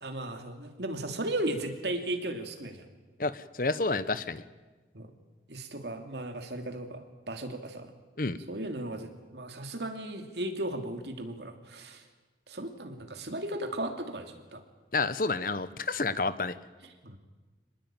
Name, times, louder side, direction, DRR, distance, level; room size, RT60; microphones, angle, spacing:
voice 1, 0.0-2.9 4.9-5.1 5.5-7.9 8.5-12.0 12.5-14.6 17.0-17.2, right 1 dB, 75° right, 6 dB, 2.8 m, -36 dB
voice 2, 3.2-4.4 8.2-8.4 14.9-16.6, left 3 dB, 50° left, 14 dB, 1.0 m, -29 dB
25.5 x 20.0 x 9.0 m, 1.3 s
head